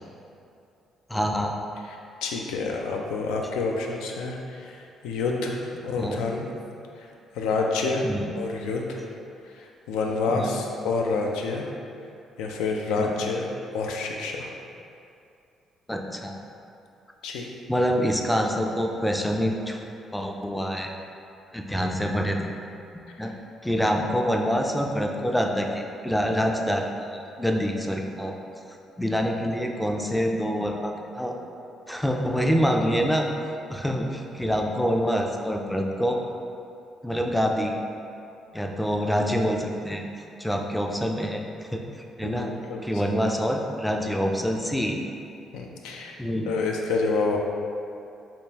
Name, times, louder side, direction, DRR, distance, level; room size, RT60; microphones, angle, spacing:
voice 1, 1.1-1.5 6.0-6.2 8.0-8.3 10.3-10.5 13.0-13.2 15.9-16.4 17.7-19.8 20.1-20.9 21.5-22.5 23.2-23.3 23.6-28.3 29.0-31.4 31.9-33.3 33.7-36.2 37.0-37.8 38.5-40.1 40.4-41.8 42.2-42.5 42.8-45.0 46.2-46.5, equal, 5° left, 2 dB, 0.3 m, -26 dB
voice 2, 2.2-6.5 7.0-7.1 7.3-8.1 8.4-9.0 9.5-11.7 12.4-13.5 13.7-14.5 17.2-17.5 42.2-42.8 45.5-46.2 46.5-47.4, left 3 dB, 90° left, 1 dB, 0.3 m, -28 dB
3.6 x 2.9 x 2.8 m, 2.6 s
cardioid pair, 80°, 0 cm